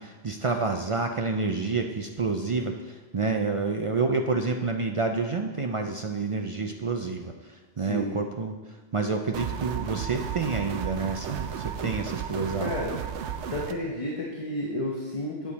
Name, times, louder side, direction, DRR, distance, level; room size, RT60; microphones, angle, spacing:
voice 1, 0.0-8.6 8.9-12.7, right 4 dB, 50° right, 4 dB, 0.4 m, -29 dB
sound 1, 9.3-13.7, right 8 dB, 90° right, 0.9 m, -33 dB
voice 2, 12.6-12.9 13.5-15.5, left 1 dB, 30° left, -3 dB, 1.0 m, -31 dB
8.4 x 8.3 x 4.0 m, 1.3 s
omnidirectional pair, 1.1 m